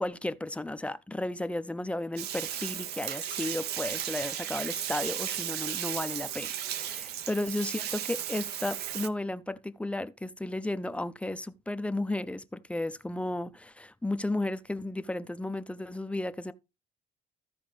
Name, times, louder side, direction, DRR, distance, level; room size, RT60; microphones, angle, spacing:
voice 1, 0.0-16.5, left 2 dB, 5° left, 0.5 m, -34 dB
Bathtub (filling or washing), 2.2-9.1, right 10 dB, 70° right, 0.7 m, -35 dB
15.0 x 5.0 x 3.3 m
cardioid pair, 110°, 17 cm